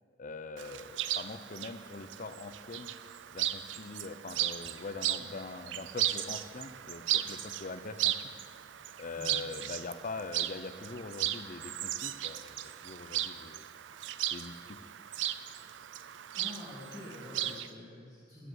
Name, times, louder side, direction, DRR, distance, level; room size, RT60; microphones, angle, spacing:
voice 1, 0.2-2.9 3.3-8.1 9.0-12.5 12.8-13.6 14.3-14.8, left 3 dB, 45° left, 10 dB, 0.6 m, -43 dB
Chirp tweet, 0.6-17.7, right 13 dB, 80° right, 0.4 m, -36 dB
voice 2, 16.3-18.5, left 1 dB, 20° right, -11 dB, 2.8 m, -46 dB
9.9 x 7.6 x 8.0 m, 2.1 s
head